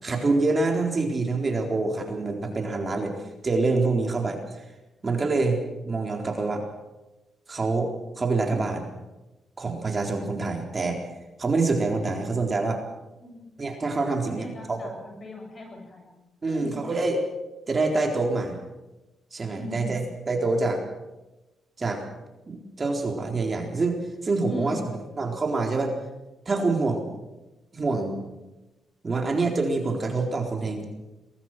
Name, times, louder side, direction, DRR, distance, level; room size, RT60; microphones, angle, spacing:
voice 1, 0.0-3.1 3.4-4.6 5.0-6.6 7.5-7.9 8.2-8.8 9.6-11.0 11.4-12.8 13.6-14.8 16.4-17.2 17.7-18.6 19.3-20.8 21.8-22.0 22.5-24.8 25.2-25.9 26.5-27.0 27.7-28.2 29.0-30.8, right 3 dB, 35° right, 3 dB, 4.0 m, -26 dB
voice 2, 14.2-16.2 16.5-16.9 19.6-20.1 24.4-24.9, left 1 dB, 40° left, 3 dB, 7.4 m, -38 dB
22.5 x 20.5 x 6.2 m, 1.0 s
cardioid pair, 75°, 0 cm